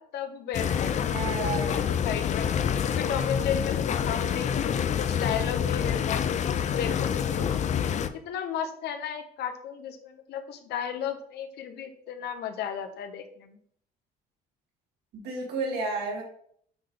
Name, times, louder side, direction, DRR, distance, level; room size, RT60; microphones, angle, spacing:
voice 1, 0.0-1.4 1.9-2.5 2.9-4.5 5.0-7.6 8.1-13.6, left 8 dB, 75° left, 8 dB, 1.0 m, -34 dB
sound 1, 0.5-8.1, left 8 dB, 45° left, 0.5 m, -27 dB
voice 2, 1.1-1.8 15.1-16.2, right 3 dB, 75° right, 0 dB, 2.4 m, -31 dB
9.1 x 3.4 x 3.9 m, 0.63 s
cardioid pair, 110°, 17 cm